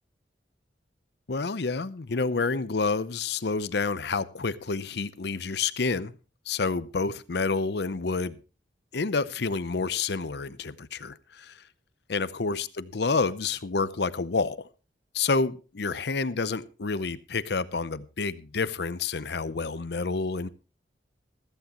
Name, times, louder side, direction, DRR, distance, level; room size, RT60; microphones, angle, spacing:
voice 1, 1.3-6.1 6.5-8.4 8.9-11.6 12.1-14.7 15.1-20.5, left 4 dB, 70° left, 0.7 m, -29 dB
15.0 x 14.0 x 3.0 m
head